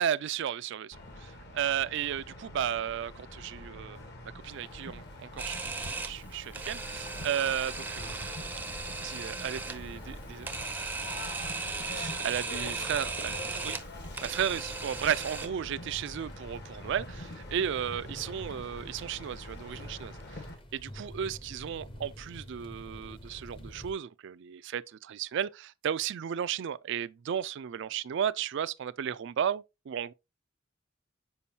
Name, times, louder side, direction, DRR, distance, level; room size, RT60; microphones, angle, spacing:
voice 1, 0.0-4.0 4.4-5.6 6.0-8.5 9.0-11.3 11.9-13.8 14.2-20.4 20.7-30.1, right 9 dB, 60° right, 0.3 m, -34 dB
sound 1, 0.9-20.5, left 1 dB, 55° left, 1.4 m, -45 dB
sound 2, 4.4-23.9, equal, 25° left, 0.7 m, -50 dB
Camera, 5.4-15.5, right 3 dB, 10° right, 0.5 m, -37 dB
6.9 x 5.1 x 2.8 m
head